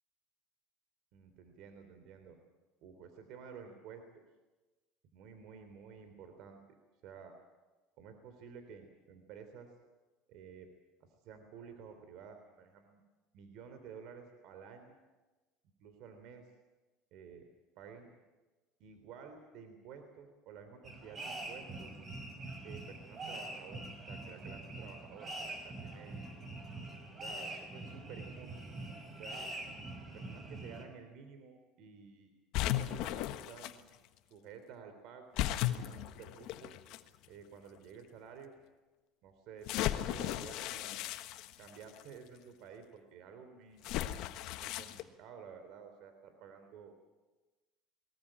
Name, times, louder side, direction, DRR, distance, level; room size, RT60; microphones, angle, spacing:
voice 1, 1.1-2.4 2.8-4.2 5.1-6.6 7.0-7.3 8.0-9.7 10.3-10.7 11.0-13.0 13.3-15.0 15.8-16.5 17.1-17.5 17.7-18.1 18.8-21.9 22.6-26.2 27.2-28.5 29.2-29.5 30.1-32.3 32.7-34.0 34.3-36.7 37.3-38.5 39.2-41.1 41.6-43.9 44.6-46.9, right 6 dB, 65° right, 7 dB, 3.4 m, -52 dB
sound 1, 20.8-30.8, right 2 dB, 35° right, 5.5 m, -44 dB
sound 2, 32.5-33.7 35.4-37.0 37.8-37.9 39.7-42.0 43.8-45.0, left 14 dB, 65° left, 1.3 m, -36 dB
21.5 x 19.0 x 8.9 m, 1.2 s
supercardioid pair, 100°, 0 cm